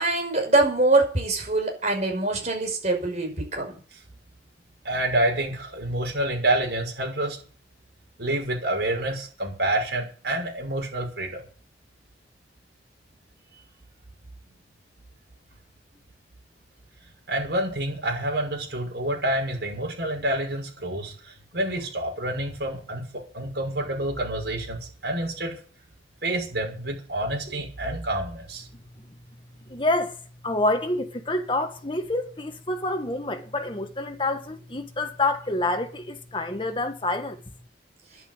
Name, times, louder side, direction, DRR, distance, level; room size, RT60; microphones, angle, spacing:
voice 1, 0.0-3.8, right 2 dB, 40° right, 5.7 m, -23 dB
voice 2, 4.8-7.4 8.2-11.4 17.3-25.6 26.2-28.7, right 1 dB, 70° right, 6.2 m, -28 dB
voice 3, 29.7-30.2 30.4-37.4, left 2 dB, 30° left, 1.6 m, -27 dB
11.0 x 11.0 x 8.1 m
head